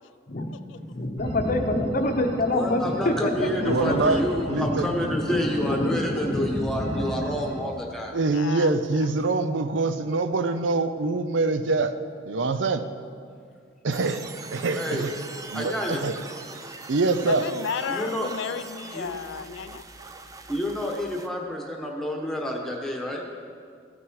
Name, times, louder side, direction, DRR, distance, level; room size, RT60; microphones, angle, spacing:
voice 1, 0.7-4.2 4.6-4.7 5.0-7.2, left 1 dB, 45° left, 6 dB, 0.8 m, -27 dB
sound 1, 1.2-7.6, equal, 50° right, 2.4 m, -34 dB
voice 2, 2.5-8.2 14.7-15.1 15.5-16.1 17.9-18.3 18.9-19.1 20.5-23.2, equal, ahead, 0 dB, 1.2 m, -29 dB
voice 3, 3.6-4.2 4.5-4.9 8.1-11.9 12.3-12.8 13.8-14.2 14.5-15.1 15.5-16.1 16.9-17.4, right 3 dB, 75° right, 10 dB, 0.5 m, -24 dB
voice 4, 8.3-8.7 9.0-9.1 17.3-19.8, left 7 dB, 75° left, 12 dB, 0.3 m, -33 dB
sound 2, 13.9-21.3, right 3 dB, 20° right, 0.5 m, -42 dB
15.0 x 6.1 x 4.7 m, 2.1 s
head